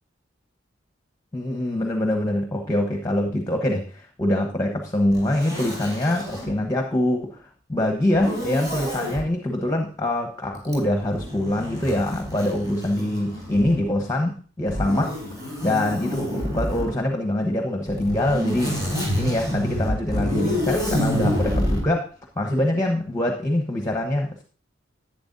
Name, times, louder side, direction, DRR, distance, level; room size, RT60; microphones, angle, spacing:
voice 1, 1.3-7.4 7.7-15.1 15.6-18.8 19.2-22.1 22.4-24.4, left 1 dB, 15° left, 2 dB, 1.0 m, -24 dB
Zipper (clothing), 5.1-6.5 8.1-9.2 10.6-13.9 14.7-16.9 17.9-21.8, equal, 20° right, 4.4 m, -28 dB
11.5 x 8.9 x 2.6 m, 0.42 s
head